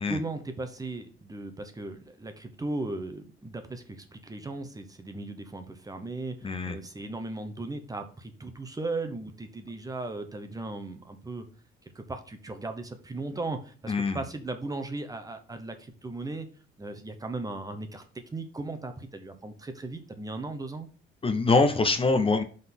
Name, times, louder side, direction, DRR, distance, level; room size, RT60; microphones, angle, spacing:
voice 1, 0.1-11.5 11.8-16.5 16.8-18.0 18.3-20.9, right 2 dB, 15° right, 7 dB, 0.8 m, -37 dB
voice 2, 6.4-6.8 13.9-14.2 21.2-22.4, left 3 dB, 25° left, 9 dB, 0.6 m, -24 dB
5.5 x 3.9 x 5.9 m, 0.40 s
cardioid pair, 140°, 21 cm